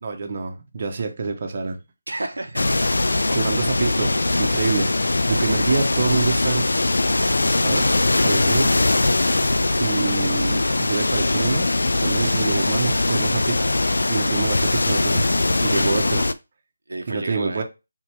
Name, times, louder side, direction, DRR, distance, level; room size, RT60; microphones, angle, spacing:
voice 1, 0.0-1.8 3.3-4.9 5.3-7.9 8.2-8.7 9.8-11.7 12.0-13.7 14.1-15.3 15.6-16.3 17.1-17.6, right 4 dB, 45° right, 0.8 m, -26 dB
voice 2, 2.1-2.7 8.4-8.7 16.9-17.6, right 2 dB, 85° right, 0.7 m, -33 dB
sound 1, 2.6-16.3, left 2 dB, 80° left, 0.4 m, -21 dB
3.7 x 3.0 x 4.5 m
figure-of-eight pair, 160°, 0 cm